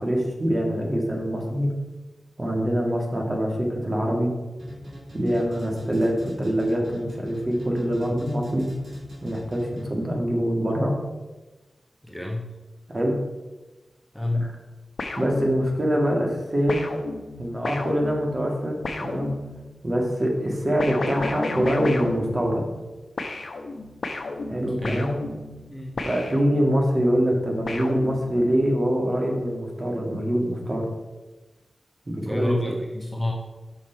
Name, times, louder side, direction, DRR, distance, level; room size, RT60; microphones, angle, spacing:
voice 1, 0.0-1.7 2.4-4.3 5.1-8.7 9.2-10.9 12.9-13.1 15.2-16.8 17.4-19.3 19.8-22.6 24.5-25.1 26.0-30.8 32.1-32.7, equal, 40° right, 0 dB, 1.8 m, -24 dB
sound 1, 4.6-10.1, equal, 90° right, 2.5 m, -41 dB
voice 2, 12.0-12.5 14.1-14.5 24.8-25.1 25.7-26.0 32.2-33.3, left 1 dB, ahead, 0 dB, 1.0 m, -28 dB
sound 2, 15.0-16.0 16.7-19.8 20.8-22.9 23.2-26.9 27.7-28.7, left 3 dB, 70° left, 0.7 m, -33 dB
6.3 x 5.9 x 4.5 m, 1.1 s
wide cardioid pair, 60°, 0 cm